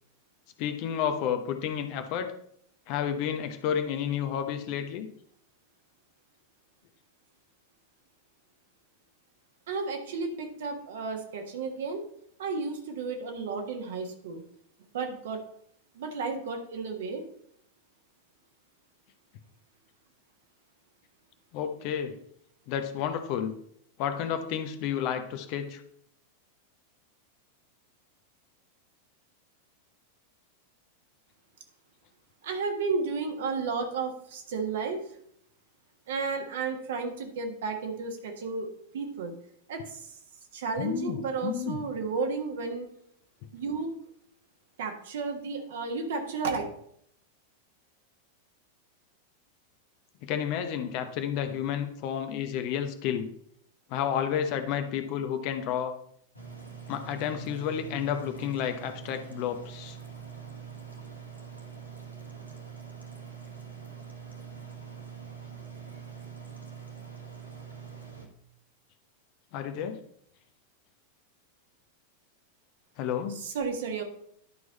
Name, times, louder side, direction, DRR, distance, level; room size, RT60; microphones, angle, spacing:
voice 1, 0.6-2.3 2.9-5.1 21.5-22.2 22.7-23.5 24.0-25.8 40.8-41.8 50.2-53.3 53.9-55.9 56.9-60.0 69.5-70.0 73.0-73.4, left 9 dB, 45° left, 8 dB, 0.8 m, -31 dB
voice 2, 9.7-12.0 12.4-14.4 14.9-15.4 15.9-17.2 32.4-35.0 36.1-39.3 39.7-40.1 40.5-42.9 43.5-43.9 44.8-46.6 73.3-74.0, right 4 dB, 60° right, 4 dB, 1.4 m, -32 dB
sound 1, 56.3-68.3, right 7 dB, 90° left, 1.5 m, -44 dB
11.0 x 4.7 x 4.1 m, 0.69 s
figure-of-eight pair, 90°, 0 cm